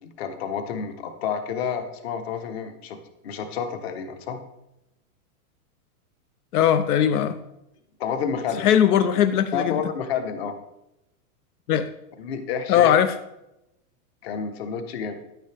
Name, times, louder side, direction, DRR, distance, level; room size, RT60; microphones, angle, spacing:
voice 1, 0.0-3.0 3.2-4.4 8.0-8.7 9.5-10.5 12.2-12.9 14.2-15.1, left 7 dB, 45° left, 8 dB, 1.2 m, -29 dB
voice 2, 6.5-7.4 8.6-9.8 11.7-11.9 12.7-13.1, left 9 dB, 80° left, 11 dB, 0.7 m, -19 dB
10.5 x 9.1 x 3.4 m, 0.88 s
supercardioid pair, 175°, 44 cm